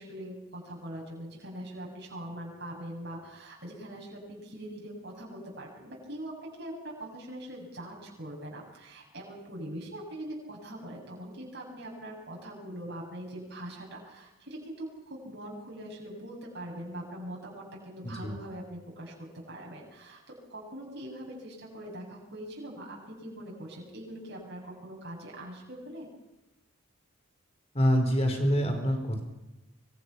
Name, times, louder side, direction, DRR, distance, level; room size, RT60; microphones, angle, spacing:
voice 1, 0.0-26.1, right 1 dB, 50° right, -2 dB, 7.3 m, -42 dB
voice 2, 18.0-18.3 27.7-29.2, equal, 30° left, 5 dB, 4.5 m, -26 dB
26.5 x 24.0 x 6.0 m, 1.0 s
head